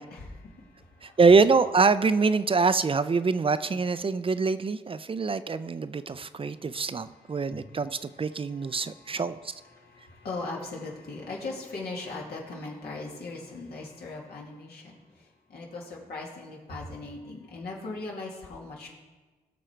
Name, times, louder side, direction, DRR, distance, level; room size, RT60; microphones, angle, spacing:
voice 1, 0.0-1.2 6.1-18.9, left 3 dB, 85° left, -3 dB, 2.4 m, -40 dB
voice 2, 1.0-9.5, right 4 dB, 35° right, 13 dB, 0.4 m, -24 dB
17.0 x 6.1 x 4.5 m, 1.3 s
cardioid pair, 65°, 16 cm